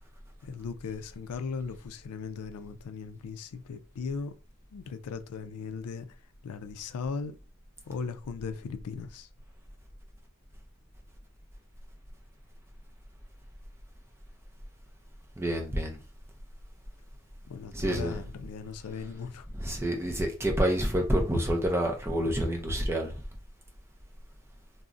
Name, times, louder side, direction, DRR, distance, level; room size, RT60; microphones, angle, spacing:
voice 1, 0.4-4.3 4.7-6.2 6.4-7.4 7.9-9.3 17.5-19.5, left 5 dB, 90° left, 0.4 m, -38 dB
voice 2, 15.4-16.0 17.7-18.2 19.5-23.1, equal, 10° right, 0.4 m, -28 dB
3.7 x 2.0 x 2.4 m
head